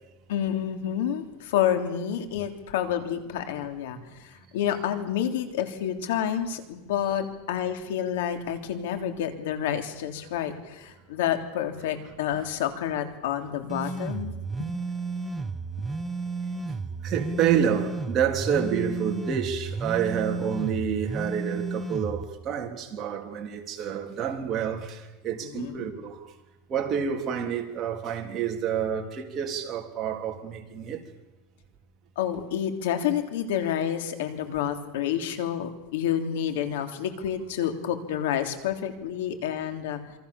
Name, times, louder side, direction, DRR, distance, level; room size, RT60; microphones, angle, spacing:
voice 1, 0.3-14.7 25.4-25.9 32.1-40.0, left 9 dB, 85° left, 3.3 m, -29 dB
sound 1, 13.7-22.2, right 4 dB, 10° right, 1.2 m, -33 dB
voice 2, 17.0-26.3 26.7-31.0, right 8 dB, 30° right, 3.5 m, -28 dB
28.0 x 23.5 x 7.2 m
supercardioid pair, 145°, 0 cm